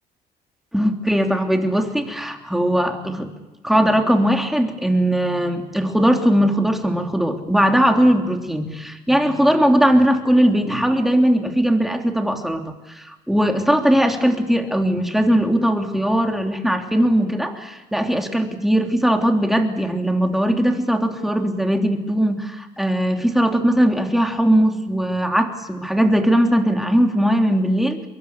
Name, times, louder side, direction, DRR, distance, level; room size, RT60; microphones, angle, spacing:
voice 1, 0.7-3.3 3.6-28.1, equal, ahead, 4 dB, 3.2 m, -19 dB
24.0 x 22.5 x 8.3 m, 1.1 s
cardioid pair, 110°, 17 cm